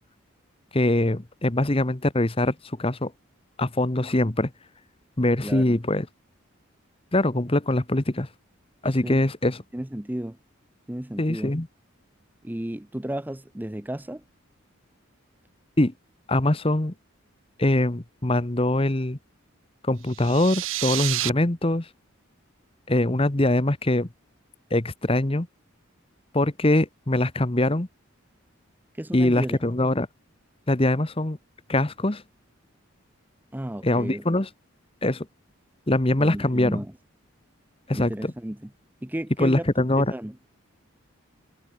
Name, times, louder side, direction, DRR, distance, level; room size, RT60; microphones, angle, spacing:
voice 1, 0.7-3.1 3.6-4.5 5.2-6.1 7.1-8.3 8.8-9.6 11.2-11.7 15.8-15.9 16.3-16.9 17.6-19.2 19.8-21.9 22.9-24.1 24.7-25.5 26.3-27.9 29.1-30.1 30.7-31.4 31.7-32.2 33.8-34.5 35.0-35.3 35.9-36.8 37.9-38.3 39.4-40.1, left 1 dB, 25° left, 1.1 m, -23 dB
voice 2, 5.4-5.8 8.9-9.2 9.7-10.4 10.9-11.5 12.4-14.2 28.9-29.6 33.5-34.2 36.2-36.9 37.9-38.7 39.0-39.7 40.0-40.4, right 1 dB, 10° right, 0.6 m, -33 dB
sound 1, 20.1-21.3, right 16 dB, 65° right, 0.5 m, -29 dB
head